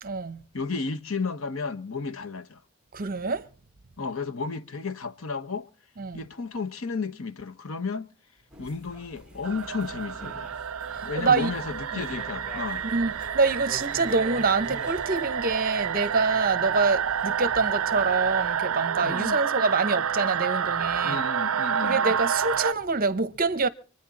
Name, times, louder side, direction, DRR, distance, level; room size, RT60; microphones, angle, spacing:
voice 1, 0.0-0.4 2.9-3.5 6.0-6.2 10.9-11.5 11.9-12.0 12.9-21.2 21.8-23.7, right 4 dB, 40° right, 1.0 m, -26 dB
voice 2, 0.5-2.6 4.0-5.7 6.1-8.1 8.6-10.5 11.0-12.8 19.0-19.4 21.0-22.0, left 4 dB, 70° left, 1.0 m, -33 dB
sound 1, 8.5-18.6, right 2 dB, 5° right, 1.4 m, -45 dB
sound 2, 9.4-22.7, right 7 dB, 70° right, 0.6 m, -29 dB
26.0 x 9.9 x 4.2 m
head